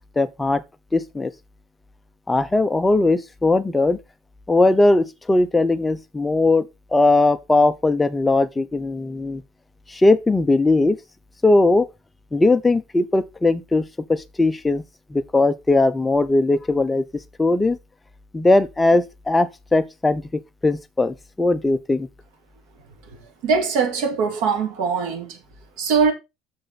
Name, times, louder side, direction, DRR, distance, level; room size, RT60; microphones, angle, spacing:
voice 1, 0.2-0.6 0.9-1.3 2.3-4.0 4.5-6.7 6.9-9.4 9.9-11.0 11.4-11.9 12.3-14.8 15.1-17.0 17.4-17.8 18.3-20.2 20.6-22.1, left 2 dB, 10° left, 0.5 m, -19 dB
voice 2, 23.4-25.4 25.8-26.1, right 5 dB, 70° right, 2.2 m, -21 dB
6.9 x 6.8 x 4.0 m
cardioid pair, 160°, 0 cm